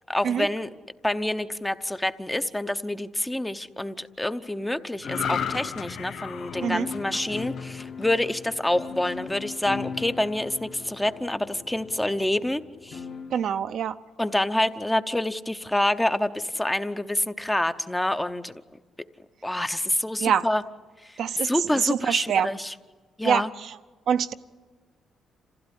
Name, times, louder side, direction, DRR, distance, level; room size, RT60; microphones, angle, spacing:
voice 1, 0.1-0.7 1.0-13.0 14.2-18.6 19.4-20.6 21.0-22.7 23.2-23.5, left 1 dB, 10° left, 10 dB, 0.8 m, -27 dB
sound 1, 5.0-8.5 8.9-9.2, left 7 dB, 70° left, 1.3 m, -34 dB
sound 2, 5.0-13.4, left 5 dB, 50° left, 1.6 m, -39 dB
voice 2, 13.3-14.0 20.2-20.4 21.2-21.5 21.8-22.5 23.2-23.4 24.1-24.3, right 8 dB, 70° right, 10 dB, 0.8 m, -24 dB
27.0 x 15.5 x 9.9 m, 1.4 s
cardioid pair, 90°, 0 cm